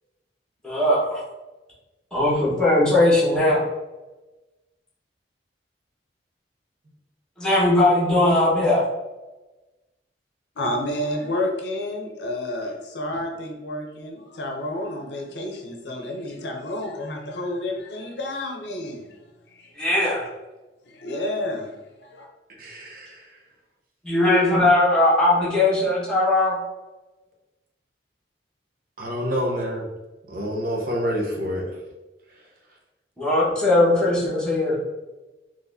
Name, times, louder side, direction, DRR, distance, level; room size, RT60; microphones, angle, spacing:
voice 1, 0.6-1.2 2.1-3.6 7.4-8.8 19.8-20.3 24.0-26.6 33.2-34.8, left 1 dB, 5° left, -7 dB, 1.3 m, -19 dB
voice 2, 10.6-19.2 19.5-19.7 20.9-22.3, left 1 dB, 75° left, 1 dB, 0.6 m, -30 dB
voice 3, 22.6-23.4 29.0-29.9 30.3-31.8 32.3-32.5, equal, 50° right, -1 dB, 0.9 m, -28 dB
4.1 x 3.1 x 2.6 m, 1.1 s
head